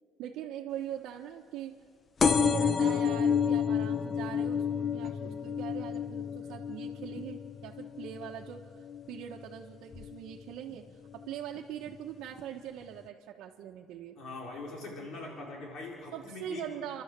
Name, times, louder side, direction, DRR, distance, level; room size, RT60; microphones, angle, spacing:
voice 1, 0.2-1.8 2.4-10.9 11.1-14.2 16.1-17.0, right 10 dB, 75° right, -2 dB, 1.2 m, -42 dB
sound 1, 2.2-9.4 9.9-10.4 11.2-11.3 11.6-11.7 11.9-12.0, left 6 dB, 30° left, 0.7 m, -30 dB
voice 2, 14.2-16.7, left 3 dB, 60° left, -1 dB, 4.2 m, -42 dB
29.5 x 12.0 x 7.5 m, 2.2 s
cardioid pair, 155°, 0 cm